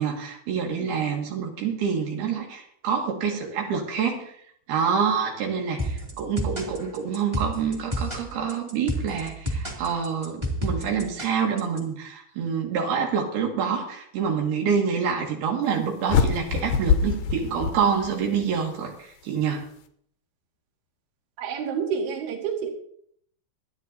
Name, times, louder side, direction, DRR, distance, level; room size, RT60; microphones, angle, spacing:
voice 1, 0.0-4.3 4.7-19.7, right 6 dB, 85° right, 1 dB, 3.9 m, -27 dB
sound 1, 5.8-11.8, equal, 15° right, 1.2 m, -30 dB
sound 2, 16.1-18.5, left 6 dB, 75° left, 2.4 m, -24 dB
voice 2, 21.4-22.7, right 7 dB, 55° right, 0 dB, 3.2 m, -28 dB
25.0 x 9.8 x 2.7 m, 0.65 s
omnidirectional pair, 4.4 m